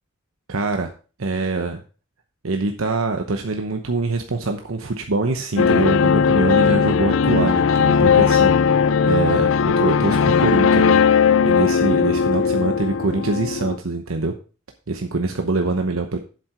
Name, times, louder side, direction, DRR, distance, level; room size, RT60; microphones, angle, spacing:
voice 1, 0.5-0.9 1.2-1.8 2.4-9.5 9.8-14.3 14.9-16.2, right 3 dB, 90° right, 5 dB, 0.9 m, -24 dB
sound 1, 5.6-13.8, left 6 dB, 70° left, 0.4 m, -17 dB
7.7 x 7.6 x 4.4 m, 0.35 s
head